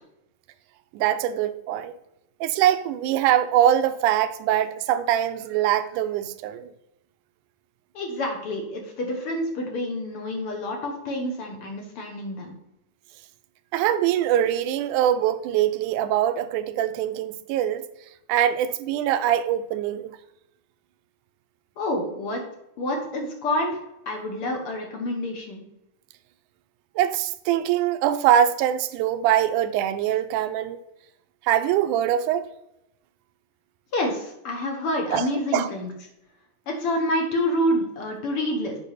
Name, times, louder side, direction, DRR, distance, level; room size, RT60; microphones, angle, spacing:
voice 1, 0.9-1.9 2.4-6.7 13.7-17.9 18.3-20.2 27.0-30.8 31.4-32.5 35.1-35.7, right 11 dB, 80° right, 2.0 m, -23 dB
voice 2, 7.9-12.5 21.8-22.4 22.8-25.6 33.9-35.9 36.7-38.8, left 1 dB, 60° left, 1.5 m, -28 dB
8.2 x 5.3 x 4.1 m
omnidirectional pair, 3.6 m